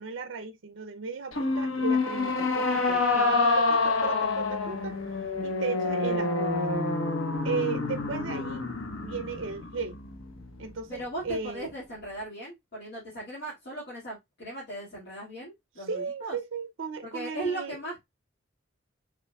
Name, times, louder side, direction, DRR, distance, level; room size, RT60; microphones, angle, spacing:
voice 1, 0.0-5.0 5.4-6.7 7.4-8.7 9.0-10.0 10.6-11.7 15.8-17.8, right 5 dB, 65° right, 0.5 m, -35 dB
sound 1, 1.3-10.7, left 3 dB, 90° left, 0.9 m, -27 dB
voice 2, 10.9-16.4 17.0-18.0, right 1 dB, 55° left, 1.9 m, -37 dB
5.9 x 3.7 x 2.2 m
head